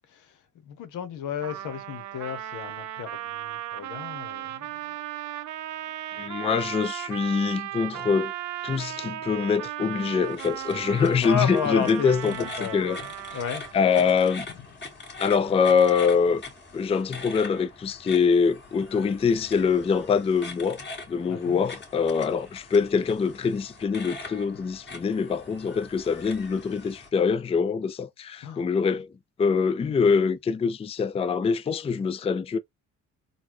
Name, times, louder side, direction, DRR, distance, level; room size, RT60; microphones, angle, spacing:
voice 1, 0.1-4.9 5.9-6.0 11.2-13.6 21.3-21.6 28.4-28.7, left 8 dB, 85° left, 1.0 m, -34 dB
Trumpet, 1.4-13.9, right 13 dB, 70° right, 0.6 m, -36 dB
voice 2, 6.1-8.3 8.6-12.3 12.7-13.0 13.7-14.5 15.2-16.4 16.7-20.8 21.1-29.1 29.4-32.6, left 5 dB, 20° left, 0.4 m, -24 dB
sound 1, 10.2-27.1, left 3 dB, 35° left, 1.7 m, -43 dB
4.0 x 2.2 x 3.0 m
cardioid pair, 90°, 30 cm